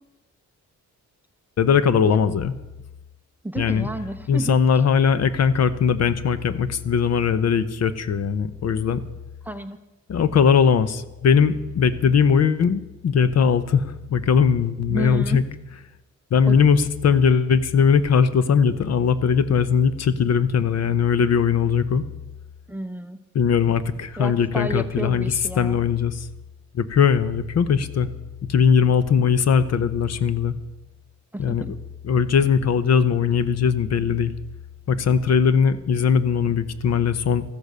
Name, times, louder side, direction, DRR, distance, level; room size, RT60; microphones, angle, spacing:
voice 1, 1.6-2.5 3.6-3.9 4.3-9.0 10.1-15.4 16.3-22.0 23.3-26.3 26.7-28.1 28.5-30.6 31.4-31.7 32.0-34.3 34.9-37.4, left 6 dB, 60° left, 14 dB, 0.8 m, -20 dB
voice 2, 3.4-4.6 9.4-9.8 14.9-15.4 16.5-16.6 22.7-23.2 24.2-25.8 31.3-31.7, right 1 dB, 5° right, 9 dB, 0.7 m, -31 dB
14.0 x 13.5 x 6.7 m, 1.0 s
wide cardioid pair, 150°, 30 cm